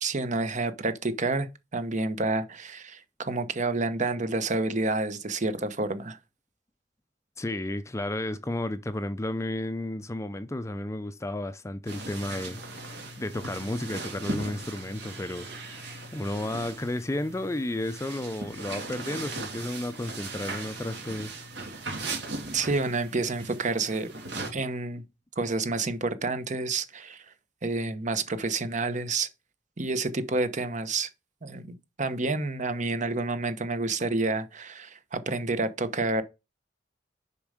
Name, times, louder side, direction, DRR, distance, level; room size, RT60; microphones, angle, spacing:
voice 1, 0.0-6.2 22.5-24.1 24.5-25.0 25.4-27.2 27.6-29.3 29.8-31.1 31.4-36.2, right 3 dB, 45° right, 0.9 m, -29 dB
voice 2, 7.4-21.3, left 1 dB, 15° left, 0.5 m, -33 dB
sound 1, 11.9-24.5, right 2 dB, 75° right, 2.6 m, -38 dB
7.0 x 5.4 x 4.9 m
head